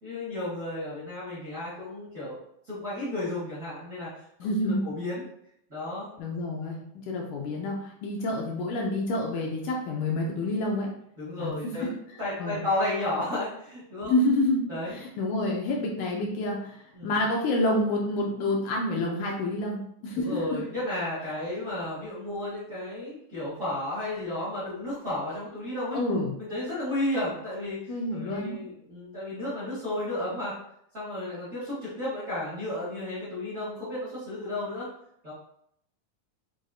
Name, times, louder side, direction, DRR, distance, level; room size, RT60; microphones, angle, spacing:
voice 1, 0.0-4.1 4.4-5.2 5.7-6.1 6.7-6.8 11.2-11.9 12.2-14.1 14.7-15.0 16.9-17.2 20.1-26.0 26.4-30.5 30.9-34.9 35.2-35.3, left 1 dB, 80° right, -11 dB, 0.7 m, -33 dB
voice 2, 4.4-4.8 6.2-10.9 11.4-11.5 11.8-11.9 12.4-12.6 14.1-14.6 14.9-16.8 17.0-20.6 25.9-26.3 27.9-28.6, left 1 dB, 80° left, -1 dB, 1.9 m, -28 dB
6.1 x 2.5 x 2.3 m, 0.73 s
omnidirectional pair, 4.0 m